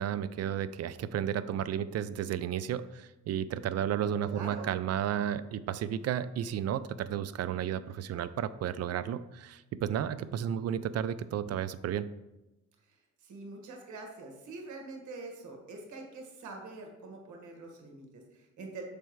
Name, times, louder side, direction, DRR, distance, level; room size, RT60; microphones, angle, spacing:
voice 1, 0.0-12.1, right 9 dB, 55° right, 14 dB, 0.4 m, -33 dB
voice 2, 4.2-4.7 13.2-18.9, right 3 dB, 75° right, 2 dB, 1.5 m, -45 dB
7.2 x 3.4 x 4.6 m, 0.97 s
cardioid pair, 90°, 30 cm